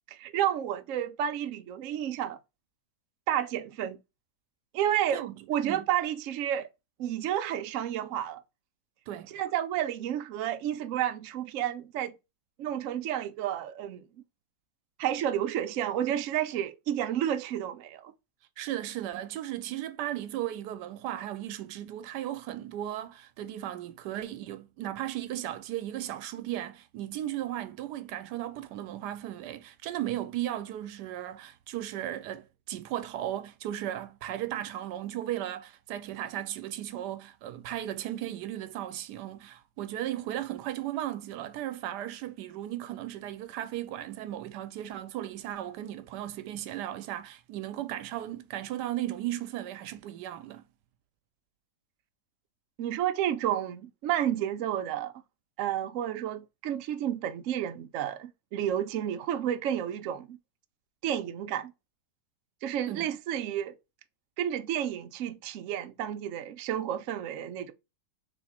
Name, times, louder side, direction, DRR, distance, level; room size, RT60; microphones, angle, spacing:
voice 1, 0.1-2.4 3.3-4.0 4.7-6.7 7.0-8.4 9.3-12.1 12.6-14.1 15.0-18.1 52.8-55.1 55.6-60.4 61.0-61.7 62.6-63.8 64.4-67.7, right 11 dB, 65° right, 0.8 m, -31 dB
voice 2, 5.1-5.9 9.1-9.3 18.6-50.6 62.9-63.1, right 12 dB, 85° right, 1.2 m, -36 dB
3.4 x 3.2 x 4.1 m
omnidirectional pair, 1.7 m